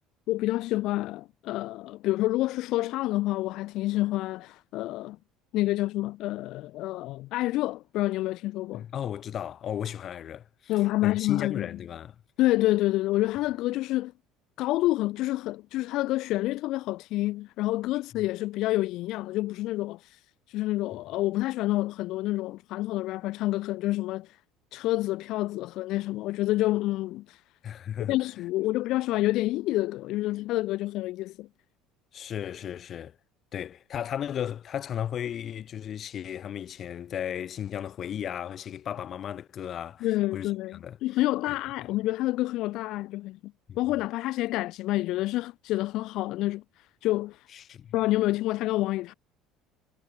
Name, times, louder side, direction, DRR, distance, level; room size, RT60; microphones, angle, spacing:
voice 1, 0.3-5.2 5.5-8.8 10.7-11.7 12.4-14.1 14.6-20.2 20.5-24.4 24.7-27.4 28.1-31.5 40.0-43.4 43.8-46.6 47.0-47.5 47.9-49.1, left 17 dB, 60° left, 2.2 m, -28 dB
voice 2, 8.7-10.7 11.0-12.2 27.6-28.2 32.1-33.2 33.5-41.0 41.8-41.9 43.7-43.8 47.5-47.9, left 9 dB, 35° left, 3.4 m, -35 dB
cardioid pair, 150°, 0 cm